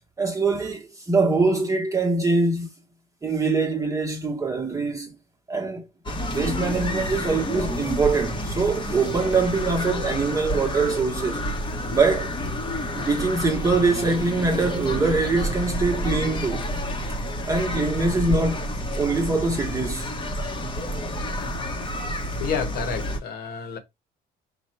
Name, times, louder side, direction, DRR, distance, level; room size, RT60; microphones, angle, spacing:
voice 1, 0.2-2.7 3.2-5.1 5.5-5.8 6.3-11.4 11.9-12.3 13.0-16.7 17.1-17.2 17.5-18.6 18.9-20.1 22.0-22.1, right 3 dB, 20° right, 0.9 m, -23 dB
sound 1, 6.1-23.2, equal, 30° left, 0.9 m, -29 dB
voice 2, 22.0-23.8, left 6 dB, 65° left, 1.1 m, -30 dB
4.3 x 2.2 x 4.3 m
cardioid pair, 110°, 17 cm